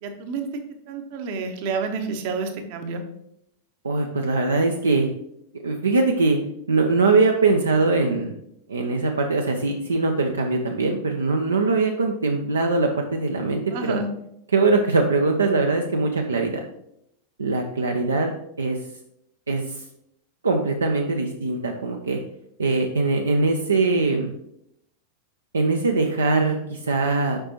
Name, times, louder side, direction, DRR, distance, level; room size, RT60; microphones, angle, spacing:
voice 1, 0.0-0.5 0.9-3.0 13.7-14.1, right 4 dB, 50° right, 6 dB, 0.9 m, -29 dB
voice 2, 3.8-5.1 5.6-6.4 6.7-8.3 8.7-14.0 14.5-16.6 17.4-18.8 19.5-19.8 20.4-22.2 22.6-24.3 25.5-27.4, right 3 dB, 75° right, 3 dB, 0.5 m, -22 dB
6.6 x 5.0 x 3.0 m, 0.76 s
figure-of-eight pair, 90°, 0 cm